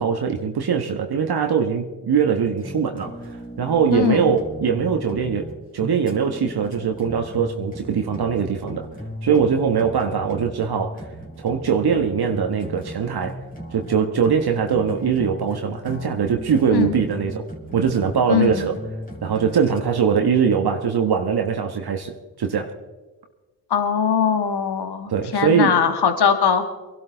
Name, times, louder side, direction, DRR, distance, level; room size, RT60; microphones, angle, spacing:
voice 1, 0.0-8.9 9.2-11.1 11.4-13.4 13.7-17.4 17.7-18.8 19.2-22.7 25.1-25.8, right 6 dB, 50° right, 1.4 m, -22 dB
sound 1, 2.6-19.8, equal, 15° left, 3.5 m, -37 dB
voice 2, 3.9-4.3 16.7-16.9 18.3-18.7 23.7-26.6, left 7 dB, 55° left, 1.7 m, -21 dB
22.5 x 12.5 x 3.9 m
hypercardioid pair, 40°, 48 cm